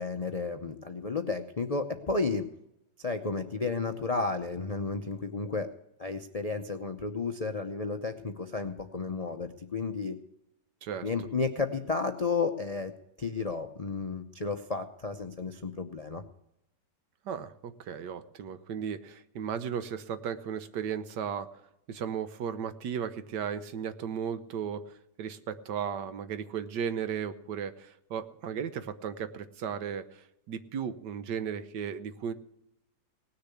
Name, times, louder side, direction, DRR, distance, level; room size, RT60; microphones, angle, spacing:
voice 1, 0.0-2.5 3.0-5.7 6.0-10.2 11.0-16.2, left 4 dB, 65° left, 6 dB, 0.3 m, -32 dB
voice 2, 17.2-21.6 21.9-32.3, right 7 dB, 75° right, 12 dB, 1.5 m, -35 dB
18.0 x 6.7 x 8.3 m, 0.83 s
omnidirectional pair, 1.9 m